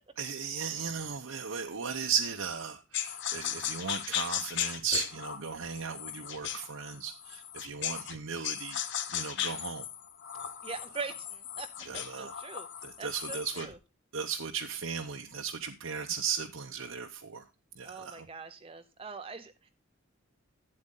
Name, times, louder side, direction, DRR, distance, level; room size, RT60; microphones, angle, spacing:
voice 1, 0.2-8.8 9.1-9.8 11.9-12.3 12.8-13.7 14.1-17.5 17.8-18.3, right 6 dB, 80° right, 2 dB, 0.9 m, -36 dB
sound 1, 2.9-8.2 8.4-13.7, left 9 dB, 60° left, 0.8 m, -37 dB
voice 2, 10.6-12.7 13.0-13.8 17.8-19.7, right 4 dB, 25° right, 8 dB, 0.6 m, -42 dB
12.0 x 8.7 x 3.7 m, 0.27 s
head